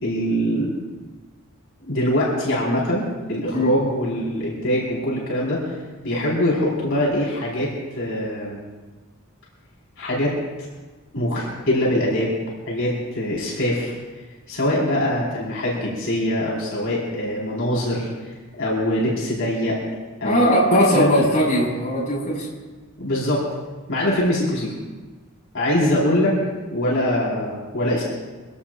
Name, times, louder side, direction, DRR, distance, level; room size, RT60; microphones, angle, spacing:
voice 1, 0.0-0.8 1.8-5.7 6.0-8.6 10.0-10.4 11.1-12.3 12.7-14.0 14.5-19.8 20.2-20.4 20.7-21.2 23.0-23.5 23.9-24.7 25.5-26.4 26.7-28.0, left 1 dB, 65° left, -6 dB, 4.5 m, -23 dB
voice 2, 20.2-22.5, equal, 35° left, -4 dB, 5.8 m, -19 dB
24.5 x 17.0 x 2.5 m, 1.3 s
head